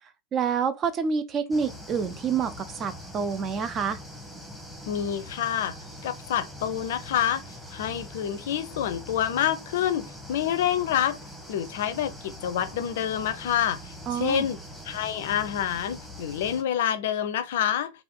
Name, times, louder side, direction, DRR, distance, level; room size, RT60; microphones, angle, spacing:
voice 1, 0.3-4.0 14.1-14.5, right 6 dB, 30° right, 0.5 m, -28 dB
sound 1, 1.5-16.6, left 1 dB, 5° right, 1.1 m, -43 dB
voice 2, 4.9-5.7 6.0-7.4 7.7-11.2 11.5-13.8 14.1-14.6 14.9-17.9, left 10 dB, 55° left, 0.5 m, -27 dB
3.5 x 2.4 x 3.7 m
figure-of-eight pair, 90°, 0 cm